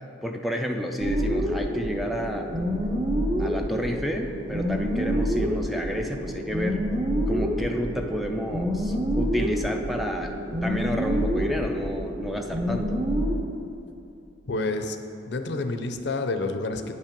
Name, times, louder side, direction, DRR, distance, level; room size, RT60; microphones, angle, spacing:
voice 1, 0.2-2.6 3.4-6.8 7.3-10.3 10.6-13.0, equal, ahead, 3 dB, 0.4 m, -30 dB
sound 1, 1.0-13.3, equal, 25° right, 0.8 m, -27 dB
voice 2, 14.5-15.0 15.3-16.9, left 2 dB, 60° left, 7 dB, 0.6 m, -28 dB
9.2 x 5.5 x 5.2 m, 2.8 s
head